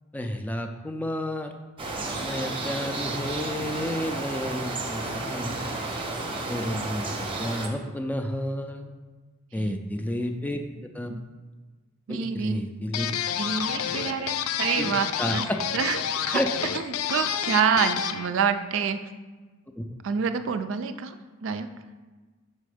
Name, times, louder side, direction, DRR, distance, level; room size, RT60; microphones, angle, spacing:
voice 1, 0.1-1.5 2.2-5.9 6.5-8.9 9.5-10.6 10.9-11.1 12.1-13.1 13.9-14.0 14.8-14.9 15.2-15.6 16.3-16.5 19.8-19.9, left 1 dB, 10° left, 5 dB, 0.3 m, -31 dB
sound 1, 1.8-7.7, right 2 dB, 25° right, 0.7 m, -32 dB
voice 2, 12.1-12.7 13.4-15.4 15.7-16.0 16.3-16.4 16.7-19.0 20.0-21.1 21.4-21.7, right 6 dB, 65° right, 9 dB, 0.4 m, -27 dB
sound 2, 12.9-18.3, left 9 dB, 90° left, 0.4 m, -29 dB
5.2 x 4.2 x 4.9 m, 1.3 s
head